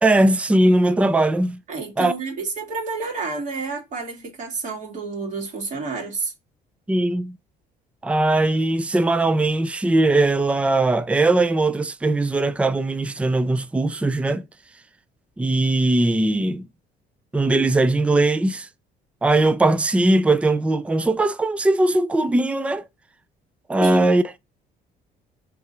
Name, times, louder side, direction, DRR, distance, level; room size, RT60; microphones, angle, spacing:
voice 1, 0.0-1.6 2.0-2.1 6.9-7.4 8.0-14.4 15.4-16.6 17.3-18.7 19.2-22.8 23.7-24.2, right 2 dB, 5° right, 0.4 m, -19 dB
voice 2, 1.7-6.3 23.8-24.1, right 4 dB, 50° right, 2.9 m, -29 dB
5.8 x 3.7 x 4.4 m
cardioid pair, 110°, 17 cm